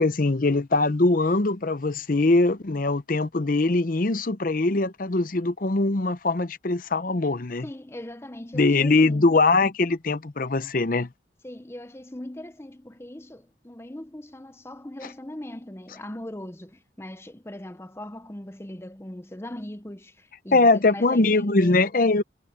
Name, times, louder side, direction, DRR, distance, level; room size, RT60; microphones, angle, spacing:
voice 1, 0.0-7.7 8.5-11.1 20.5-22.2, left 3 dB, 45° left, 0.7 m, -22 dB
voice 2, 7.6-9.3 11.4-21.8, left 1 dB, 15° left, 0.7 m, -40 dB
head